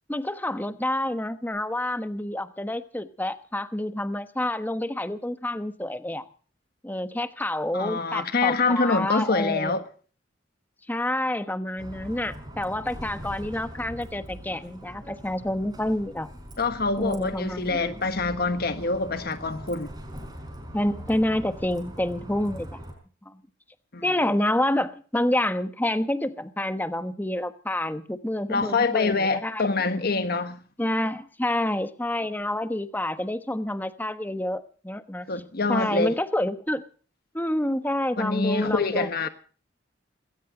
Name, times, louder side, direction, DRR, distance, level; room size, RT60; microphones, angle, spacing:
voice 1, 0.1-6.2 6.8-9.8 10.9-16.3 17.0-17.9 20.7-22.8 23.2-23.4 24.0-29.6 30.8-35.3 35.7-36.8 37.3-39.3, left 1 dB, 10° left, 1.1 m, -28 dB
voice 2, 7.7-9.8 16.6-19.9 23.9-24.0 28.5-30.6 35.3-36.1 38.2-39.3, left 3 dB, 55° left, 1.4 m, -25 dB
Bus, 11.8-22.9, equal, 20° right, 5.3 m, -42 dB
19.5 x 17.5 x 3.9 m
head